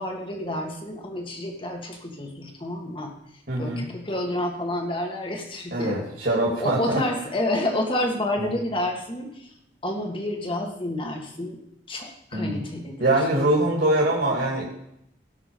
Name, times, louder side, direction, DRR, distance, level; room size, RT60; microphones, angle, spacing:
voice 1, 0.0-3.1 3.6-6.0 6.6-9.5 9.8-11.6 11.9-13.2, left 1 dB, 30° left, 2 dB, 1.8 m, -29 dB
voice 2, 3.5-3.8 5.7-7.0 8.4-8.5 12.3-12.6 13.0-14.7, right 1 dB, 60° right, -5 dB, 2.8 m, -23 dB
17.5 x 6.1 x 5.3 m, 0.77 s
head